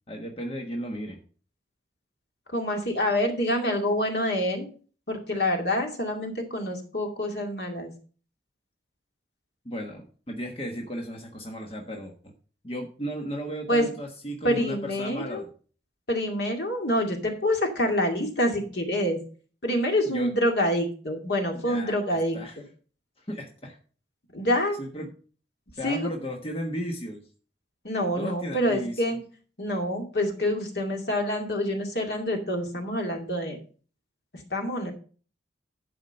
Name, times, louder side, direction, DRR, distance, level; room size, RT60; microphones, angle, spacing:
voice 1, 0.1-1.2 9.6-12.3 12.6-15.5 20.1-20.3 21.6-22.6 23.2-23.8 24.8-25.1 25.8-27.2 28.2-29.1, equal, 30° left, 2 dB, 1.3 m, -35 dB
voice 2, 2.5-4.7 5.1-7.9 13.7-13.9 14.4-15.4 16.1-19.2 19.6-22.4 24.3-24.8 25.8-26.1 27.8-29.2 29.6-33.6 34.5-34.9, left 1 dB, 65° left, 2 dB, 2.3 m, -26 dB
12.0 x 5.0 x 5.4 m, 0.40 s
head